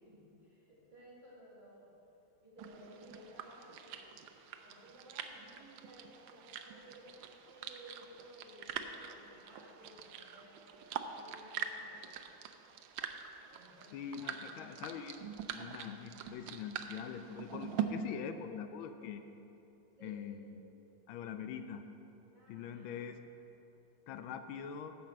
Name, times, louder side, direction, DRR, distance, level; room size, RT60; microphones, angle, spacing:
voice 1, 0.0-1.9 2.4-12.0 13.5-14.4 20.0-20.2 22.3-23.0, equal, 25° right, -7 dB, 2.3 m, -57 dB
sound 1, 2.6-17.8, right 9 dB, 90° right, 1.4 m, -44 dB
voice 2, 13.9-15.2 15.5-19.2 20.0-20.7 21.1-21.8 22.5-23.2 24.1-25.0, left 8 dB, 85° left, 9 dB, 1.4 m, -43 dB
10.0 x 5.7 x 7.5 m, 3.0 s
omnidirectional pair, 2.2 m